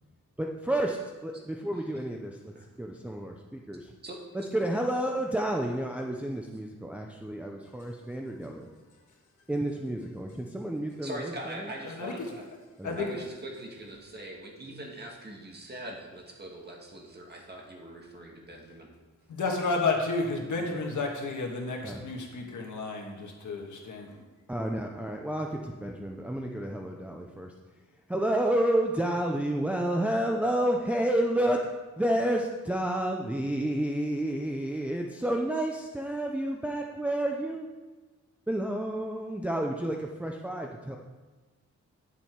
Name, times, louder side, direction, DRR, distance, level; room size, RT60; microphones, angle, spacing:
voice 1, 0.4-2.5 2.8-3.9 4.5-8.7 9.5-11.7 12.8-13.0 21.8-22.0 24.5-27.5 28.1-31.6 32.0-37.7 38.5-41.0, right 1 dB, 5° right, 0 dB, 0.5 m, -30 dB
voice 2, 11.0-12.4 13.0-18.9, right 1 dB, 35° right, 0 dB, 1.7 m, -42 dB
voice 3, 11.8-12.3 12.8-13.1 19.3-24.2, left 3 dB, 75° left, 1 dB, 1.7 m, -31 dB
9.9 x 7.1 x 4.5 m, 1.3 s
wide cardioid pair, 145°, 30 cm